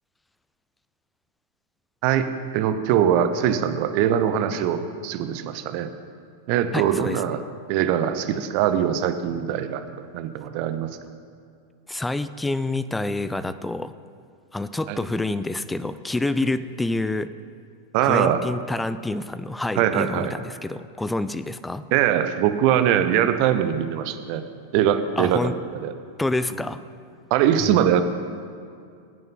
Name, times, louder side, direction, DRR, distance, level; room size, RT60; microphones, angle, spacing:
voice 1, 2.5-5.9 6.5-7.4 7.7-9.8 10.1-10.9 14.9-15.0 17.9-18.4 19.8-20.3 21.9-24.4 24.7-25.5 25.8-25.9 27.3-28.0, right 10 dB, 45° right, 9 dB, 0.9 m, -22 dB
voice 2, 6.7-7.2 11.9-13.9 14.5-17.3 18.0-21.8 25.2-25.5 26.2-26.8 27.6-27.9, left 2 dB, 5° left, 13 dB, 0.5 m, -27 dB
21.0 x 9.1 x 4.0 m, 2.3 s
figure-of-eight pair, 90°, 0 cm